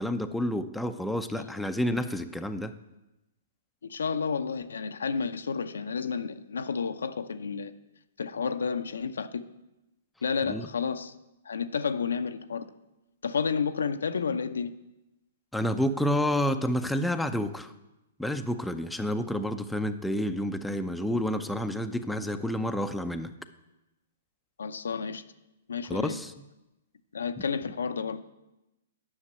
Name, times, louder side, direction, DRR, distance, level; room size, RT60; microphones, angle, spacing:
voice 1, 0.0-2.7 10.5-10.7 15.5-17.7 18.2-23.3 25.9-26.3, left 1 dB, ahead, 0.6 m, -29 dB
voice 2, 3.8-7.7 8.2-9.4 10.2-11.1 11.5-12.7 13.2-14.7 24.6-25.2 25.7-26.2 27.1-28.2, left 5 dB, 75° left, 0.7 m, -31 dB
9.8 x 6.6 x 8.5 m
figure-of-eight pair, 120°, 0 cm